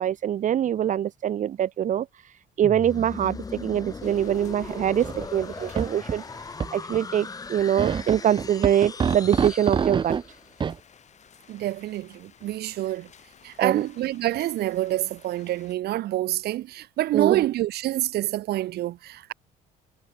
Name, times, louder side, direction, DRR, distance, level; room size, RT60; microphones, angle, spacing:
voice 1, 0.0-2.1 2.6-6.2 6.7-10.1 13.6-13.8 17.1-17.4, right 10 dB, 50° right, 1.0 m, -24 dB
sound 1, 2.6-10.5, left 4 dB, 20° left, 1.0 m, -39 dB
rain on awning, 4.0-15.7, left 8 dB, 45° left, 5.7 m, -54 dB
sound 2, 5.0-5.3 5.6-6.2 6.6-6.7 6.9-7.0 7.8-10.2 10.6-10.8, right 6 dB, 30° right, 0.6 m, -26 dB
voice 2, 11.5-13.1 13.4-19.3, right 15 dB, 70° right, 2.1 m, -27 dB
cardioid pair, 110°, 17 cm